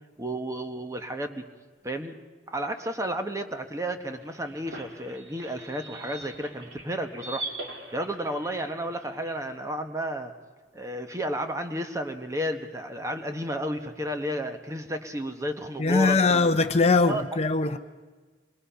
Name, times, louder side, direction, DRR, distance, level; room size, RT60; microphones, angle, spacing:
voice 1, 0.2-1.5 1.8-2.2 2.5-7.5 7.9-10.3 10.7-16.4 17.1-17.2, equal, 15° right, 1.1 m, -32 dB
sound 1, 4.0-9.4, right 2 dB, 85° right, 2.9 m, -42 dB
voice 2, 15.8-17.8, left 3 dB, 35° left, 0.6 m, -21 dB
26.5 x 21.5 x 5.7 m
head